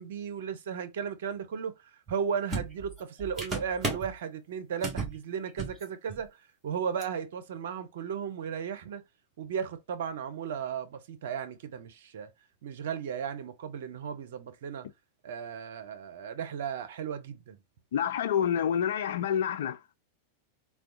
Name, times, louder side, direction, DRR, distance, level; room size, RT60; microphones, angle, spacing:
voice 1, 0.0-9.0 9.4-12.3 12.6-14.9 15.2-17.6, right 7 dB, 60° right, 0.5 m, -35 dB
sound 1, 2.1-2.2 2.5-4.1 4.8-5.2 5.5-5.8 6.1-6.3 7.0-7.1, right 3 dB, 15° right, 1.5 m, -34 dB
voice 2, 17.9-19.8, left 8 dB, 60° left, 0.4 m, -28 dB
3.4 x 2.2 x 2.5 m
figure-of-eight pair, 90°, 0 cm